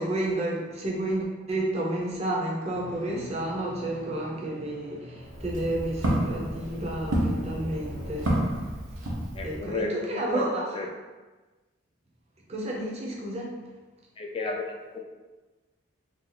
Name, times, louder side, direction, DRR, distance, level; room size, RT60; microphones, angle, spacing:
voice 1, 0.0-8.3 9.4-10.7 12.5-13.5, right 1 dB, 30° right, -3 dB, 0.6 m, -31 dB
sound 1, 2.7-8.4, left 1 dB, 70° left, 0.8 m, -45 dB
Walk footsteps, 5.2-9.7, right 1 dB, 75° right, 0.8 m, -30 dB
voice 2, 9.3-10.4 10.7-10.9 14.2-15.0, left 3 dB, 25° left, 0 dB, 0.3 m, -33 dB
2.6 x 2.4 x 3.9 m, 1.2 s
head